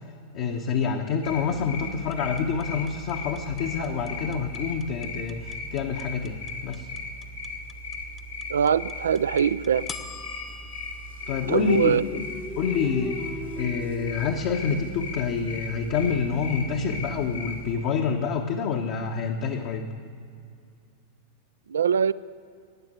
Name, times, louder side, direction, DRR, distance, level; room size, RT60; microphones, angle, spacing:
voice 1, 0.3-6.9 11.3-12.2 12.5-13.2 13.6-19.8, left 6 dB, 50° left, 1 dB, 1.0 m, -27 dB
sound 1, 1.2-17.8, left 3 dB, 85° left, 2.6 m, -38 dB
sound 2, 2.1-12.3, left 5 dB, 20° left, 1.0 m, -44 dB
voice 2, 8.5-9.9 11.5-12.0 21.7-22.1, right 7 dB, 65° right, 17 dB, 0.4 m, -22 dB
sound 3, 11.3-15.1, equal, ahead, 0.9 m, -38 dB
15.0 x 9.7 x 9.3 m, 2.4 s
figure-of-eight pair, 90°, 0 cm